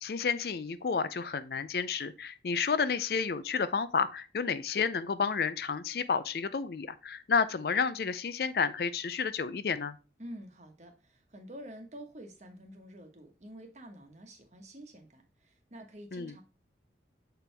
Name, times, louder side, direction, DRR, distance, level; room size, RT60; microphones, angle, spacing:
voice 1, 0.0-10.0 16.1-16.3, left 5 dB, 55° left, 0.4 m, -31 dB
voice 2, 10.2-16.4, equal, 40° right, 1.2 m, -48 dB
6.9 x 4.5 x 3.3 m
head